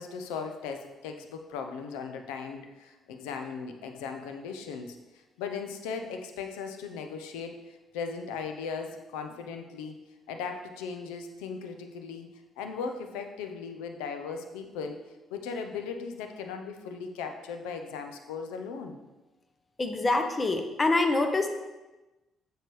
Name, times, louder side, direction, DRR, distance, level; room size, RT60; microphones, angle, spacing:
voice 1, 0.0-5.0 5.4-7.6 7.9-10.0 10.3-12.3 12.6-15.0 15.3-19.0, left 5 dB, 80° left, 5 dB, 0.6 m, -37 dB
voice 2, 19.8-21.5, left 2 dB, 30° left, 6 dB, 0.9 m, -25 dB
6.6 x 6.5 x 3.2 m, 1.1 s
hypercardioid pair, 50°, 0 cm